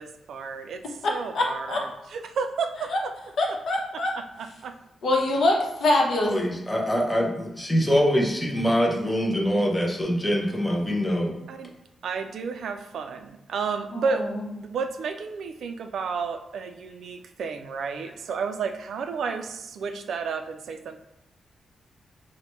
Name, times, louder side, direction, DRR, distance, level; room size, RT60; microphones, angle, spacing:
voice 1, 0.0-3.1 3.5-3.6 4.4-4.8 11.5-11.7 12.0-21.0, right 5 dB, 70° right, 7 dB, 0.3 m, -32 dB
voice 2, 1.0-1.8 2.9-3.0 3.4-4.1 5.0-6.3 13.9-14.4, left 2 dB, 60° left, -1 dB, 0.8 m, -24 dB
voice 3, 6.3-11.3, equal, 5° left, -1 dB, 0.6 m, -24 dB
4.0 x 2.1 x 3.0 m, 0.92 s
wide cardioid pair, 160°, 0 cm